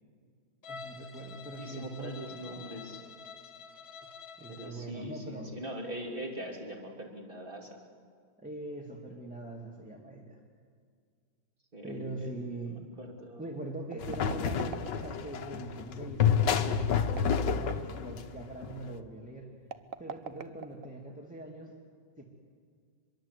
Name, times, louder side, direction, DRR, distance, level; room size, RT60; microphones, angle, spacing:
Bowed string instrument, 0.6-4.9, left 6 dB, 35° left, 1.9 m, -48 dB
voice 1, 0.7-2.7 4.4-5.5 8.4-10.4 11.8-12.8 13.4-19.5 20.0-21.7 22.2-22.3, right 2 dB, 5° right, -1 dB, 2.1 m, -42 dB
voice 2, 1.6-3.0 4.5-7.8 11.7-13.4, equal, 30° right, 1 dB, 3.4 m, -42 dB
sound 1, 13.9-15.3 16.9-18.0 19.6-21.2, right 8 dB, 55° right, 1.2 m, -42 dB
sound 2, 14.0-18.9, left 7 dB, 75° left, 1.7 m, -29 dB
25.0 x 22.5 x 8.3 m, 2.1 s
omnidirectional pair, 2.0 m